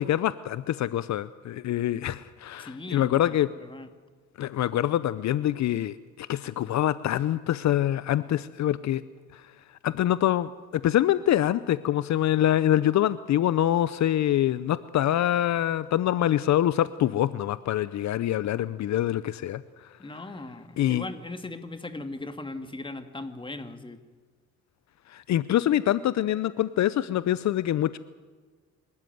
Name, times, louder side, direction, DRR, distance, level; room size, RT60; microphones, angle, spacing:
voice 1, 0.0-3.5 4.4-9.0 9.3-9.4 9.8-19.6 20.8-21.0 25.1-28.0, left 12 dB, 65° left, 16 dB, 0.7 m, -25 dB
voice 2, 2.6-3.9 20.0-24.0, left 2 dB, 15° left, 8 dB, 2.1 m, -39 dB
26.5 x 13.5 x 9.3 m, 1.4 s
cardioid pair, 90°, 30 cm